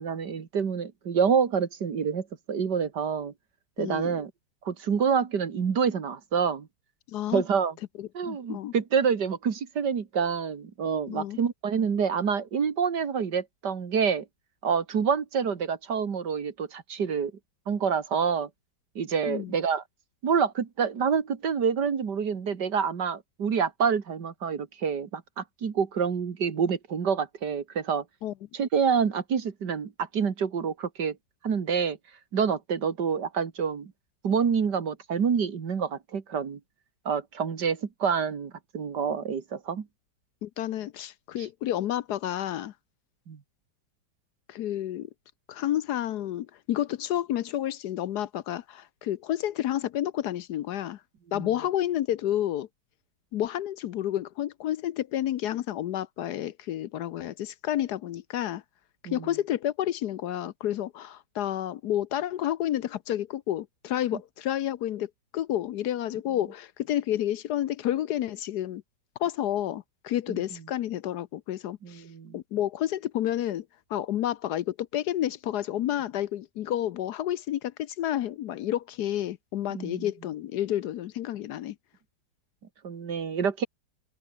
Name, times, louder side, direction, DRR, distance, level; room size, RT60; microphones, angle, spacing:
voice 1, 0.0-3.3 3.8-4.3 4.6-6.7 7.3-7.7 8.1-14.3 14.6-17.3 17.7-18.5 19.0-19.8 20.2-28.0 28.5-31.2 31.4-32.0 32.3-33.9 34.2-36.6 37.1-39.9 43.3-43.4 51.3-51.5 59.1-59.3 70.3-70.4 71.8-72.4 79.7-80.1 82.8-83.7, right 6 dB, 65° right, 2.4 m, -27 dB
voice 2, 3.8-4.2 7.1-7.4 8.0-8.7 11.1-11.4 19.3-19.5 28.2-28.3 40.4-42.7 44.5-45.1 45.5-51.0 51.3-52.7 53.3-58.6 59.1-68.8 69.2-72.0 72.3-73.6 73.9-81.8, left 12 dB, 70° left, 1.2 m, -30 dB
open air
omnidirectional pair, 1.9 m